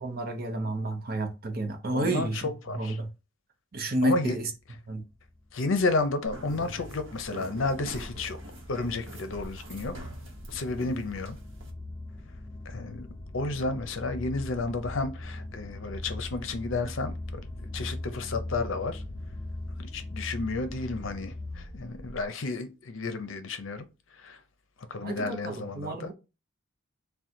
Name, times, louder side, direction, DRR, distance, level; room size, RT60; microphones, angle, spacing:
voice 1, 0.0-2.5 2.7-3.1 3.7-4.5 4.9-5.0 13.7-13.8 25.0-26.1, right 1 dB, 45° right, 0.7 m, -30 dB
voice 2, 1.9-3.0 4.0-4.3 5.5-8.4 8.7-10.0 10.5-11.4 12.7-13.1 13.3-19.0 19.8-23.9 24.1-24.4 24.9-26.1, left 3 dB, 65° left, 0.6 m, -32 dB
sound 1, 5.0-22.3, left 1 dB, 30° left, 0.7 m, -41 dB
sound 2, 6.2-11.7, right 1 dB, 65° right, 1.0 m, -44 dB
3.7 x 2.2 x 4.3 m
head